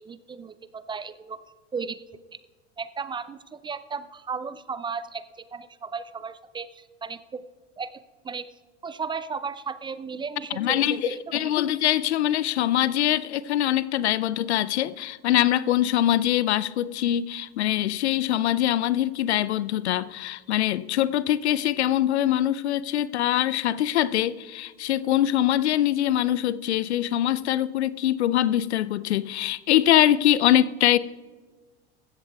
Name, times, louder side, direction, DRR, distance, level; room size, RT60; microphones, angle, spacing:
voice 1, 0.0-1.4 1.7-2.0 2.8-7.5 7.8-7.9 8.2-8.5 8.8-11.5, right 5 dB, 15° right, 0.3 m, -35 dB
voice 2, 10.6-31.0, left 12 dB, 80° left, 0.5 m, -23 dB
16.0 x 13.5 x 2.3 m
hypercardioid pair, 85°, 33 cm